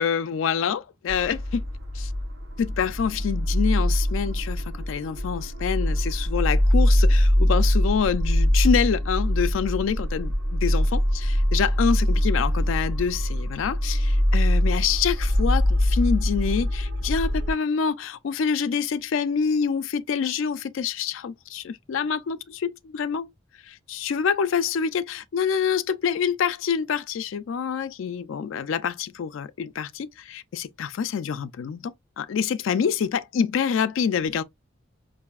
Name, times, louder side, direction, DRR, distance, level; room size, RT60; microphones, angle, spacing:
voice 1, 0.0-1.6 1.9-2.1 2.6-22.4 22.9-23.3 23.9-34.4, left 6 dB, 75° left, 0.4 m, -26 dB
sound 1, 1.1-17.5, equal, 70° right, 0.8 m, -23 dB
4.7 x 2.6 x 2.3 m
head